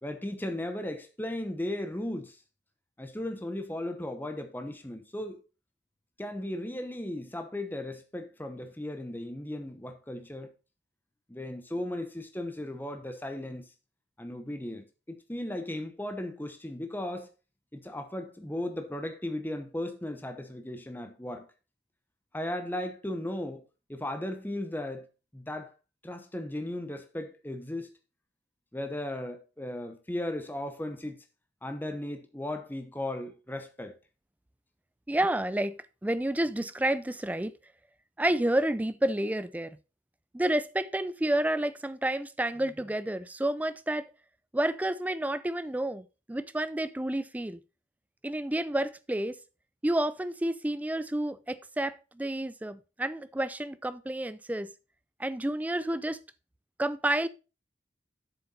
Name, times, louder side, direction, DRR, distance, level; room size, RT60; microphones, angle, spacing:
voice 1, 0.0-2.4 3.0-5.4 6.2-10.5 11.3-13.7 14.2-17.3 17.7-21.5 22.3-23.6 23.9-25.1 25.3-25.7 26.0-27.9 28.7-31.2 31.6-33.9, left 1 dB, 10° left, 0.9 m, -36 dB
voice 2, 35.1-37.5 38.2-39.8 40.3-44.1 44.5-47.6 48.2-49.4 49.8-54.7 55.2-56.2 56.8-57.3, right 1 dB, 10° right, 0.4 m, -30 dB
7.8 x 7.0 x 4.0 m
head